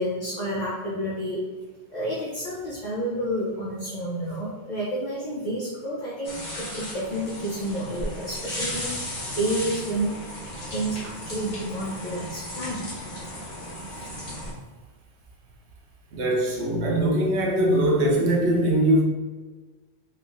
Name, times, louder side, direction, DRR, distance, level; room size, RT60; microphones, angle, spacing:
voice 1, 0.0-1.4 1.9-10.2 10.7-13.0, right 1 dB, 45° left, -7 dB, 0.9 m, -30 dB
sound 1, 6.2-14.5, left 1 dB, 90° left, 1.5 m, -35 dB
voice 2, 16.1-19.0, right 1 dB, 85° right, -1 dB, 1.0 m, -21 dB
4.2 x 3.4 x 2.6 m, 1.3 s
omnidirectional pair, 1.1 m